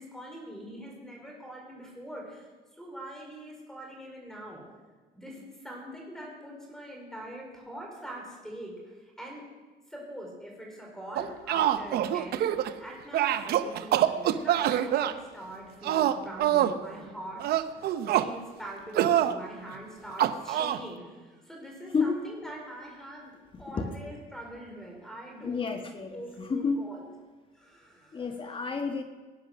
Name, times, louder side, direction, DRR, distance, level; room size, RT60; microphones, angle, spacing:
voice 1, 0.0-4.6 5.1-9.4 9.9-17.9 18.2-23.3 23.6-25.7 26.1-27.0 27.5-28.3, right 1 dB, 5° left, -1 dB, 4.6 m, -43 dB
sound 1, 11.2-12.8 13.1-15.1 15.8-16.8 17.4-18.3 18.9-19.3 20.2-20.8, right 11 dB, 70° right, 0.8 m, -25 dB
voice 2, 23.5-23.9 25.4-26.9 28.1-29.0, left 4 dB, 30° left, 5 dB, 1.4 m, -30 dB
18.5 x 10.5 x 6.1 m, 1.4 s
cardioid pair, 110°, 17 cm